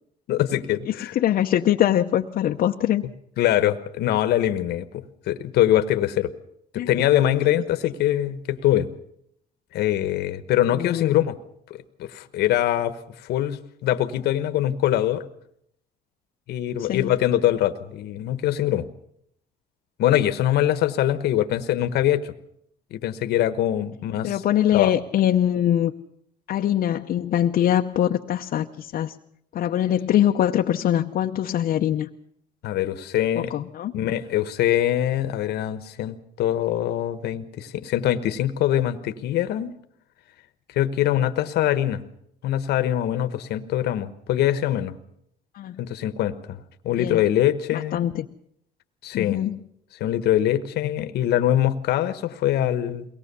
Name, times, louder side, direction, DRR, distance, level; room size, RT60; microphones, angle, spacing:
voice 1, 0.3-1.2 3.4-6.3 6.7-8.9 9.7-11.4 11.7-12.9 13.2-15.3 16.5-18.9 20.0-22.3 22.9-24.4 24.7-24.9 32.6-33.5 33.9-39.7 40.7-42.0 42.4-45.0 45.8-46.6 46.8-48.0 49.0-49.4 49.9-53.1, left 12 dB, 75° left, 10 dB, 1.2 m, -23 dB
voice 2, 0.9-3.0 6.8-6.9 10.7-11.3 16.8-17.1 24.2-25.9 26.5-29.1 29.5-32.1 33.3-33.9 45.5-45.8 47.0-47.2 47.7-48.3 49.1-49.6, left 11 dB, 60° left, 3 dB, 0.8 m, -23 dB
22.5 x 18.5 x 6.9 m, 0.71 s
cardioid pair, 110°, 17 cm